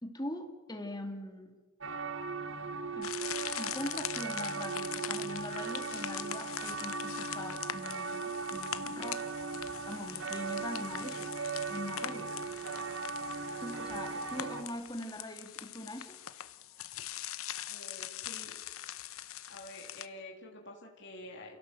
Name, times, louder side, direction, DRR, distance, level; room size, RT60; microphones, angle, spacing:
voice 1, 0.0-1.6 3.0-3.2 3.6-9.3 9.9-11.4 11.7-12.3 13.6-16.2, left 1 dB, 15° left, 5 dB, 2.3 m, -42 dB
sound 1, 1.8-14.6, right 4 dB, 60° right, 1.3 m, -38 dB
sound 2, 3.0-20.1, left 11 dB, 70° left, 0.9 m, -42 dB
voice 2, 13.9-14.2 17.7-18.6 19.5-21.6, left 1 dB, 50° left, 0 dB, 3.2 m, -49 dB
28.5 x 17.0 x 7.8 m, 1.4 s
head